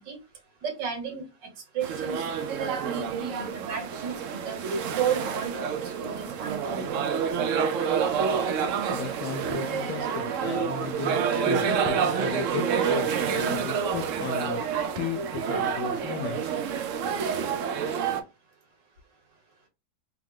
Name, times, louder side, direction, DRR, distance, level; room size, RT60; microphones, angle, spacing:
voice 1, 0.6-1.2 1.7-2.2 2.6-4.6 5.0-7.1, right 7 dB, 70° right, 1.9 m, -33 dB
sound 1, 1.8-18.2, right 6 dB, 90° right, 0.6 m, -28 dB
voice 2, 8.9-16.6, left 7 dB, 75° left, 1.2 m, -35 dB
3.5 x 3.1 x 3.6 m
omnidirectional pair, 2.0 m